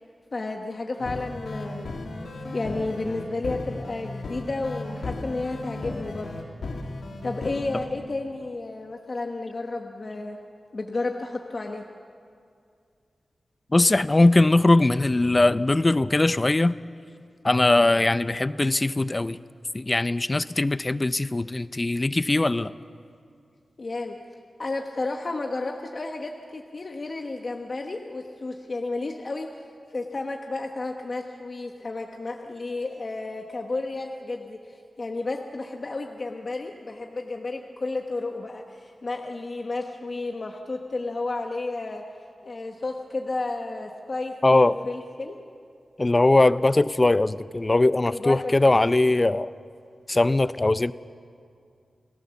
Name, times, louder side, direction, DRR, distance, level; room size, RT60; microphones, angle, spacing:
voice 1, 0.3-1.9 2.5-6.4 7.2-10.4 10.7-11.8 23.8-24.2 24.6-42.0 42.4-45.4 48.0-48.8, left 3 dB, 40° left, 2 dB, 1.3 m, -32 dB
sound 1, 1.0-7.8, left 2 dB, 85° left, 2.8 m, -35 dB
voice 2, 13.7-16.7 17.4-19.4 19.7-22.7 44.4-44.8 46.0-49.5 50.1-50.9, left 2 dB, 25° left, 15 dB, 0.5 m, -20 dB
29.5 x 18.0 x 7.1 m, 2.3 s
wide cardioid pair, 120°, 0 cm